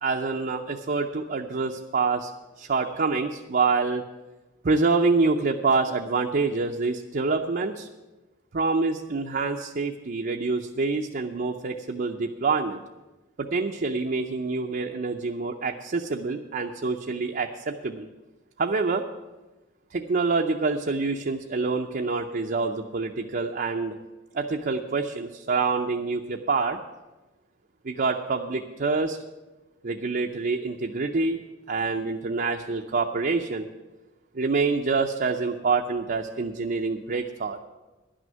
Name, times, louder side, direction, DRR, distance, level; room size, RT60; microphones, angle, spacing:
voice 1, 0.0-2.3 2.6-4.0 4.6-7.9 8.5-12.8 13.4-18.1 18.6-19.0 19.9-24.0 24.3-26.8 27.8-29.2 29.8-31.4 31.7-33.7 34.3-37.6, right 4 dB, 45° right, 2 dB, 0.6 m, -26 dB
11.0 x 6.3 x 9.1 m, 1.1 s
head